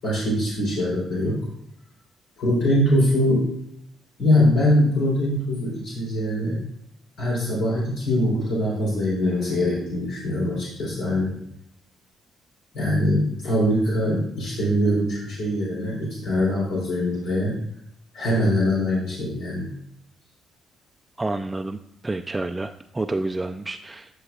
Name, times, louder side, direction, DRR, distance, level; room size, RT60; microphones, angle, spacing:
voice 1, 0.0-1.5 2.4-3.4 4.2-6.6 7.2-11.4 12.7-17.6 18.1-19.7, left 1 dB, 80° left, -5 dB, 3.5 m, -22 dB
voice 2, 21.2-24.1, right 2 dB, 15° right, 6 dB, 0.3 m, -29 dB
11.5 x 6.9 x 2.4 m, 0.75 s
cardioid pair, 90°, 0 cm